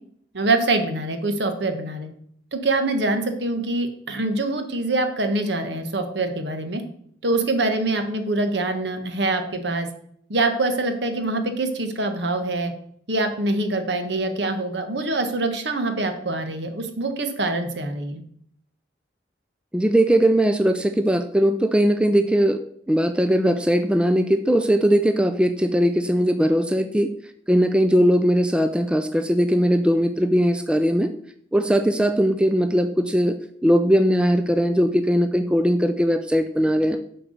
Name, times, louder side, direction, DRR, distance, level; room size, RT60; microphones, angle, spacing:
voice 1, 0.3-2.1 2.5-6.8 7.2-9.9 10.3-12.7 13.1-18.2, right 2 dB, 70° right, 7 dB, 1.2 m, -24 dB
voice 2, 19.7-22.6 22.9-27.1 27.5-31.1 31.5-33.4 33.6-37.0, equal, 5° right, 8 dB, 0.4 m, -19 dB
7.8 x 4.6 x 6.5 m, 0.66 s
head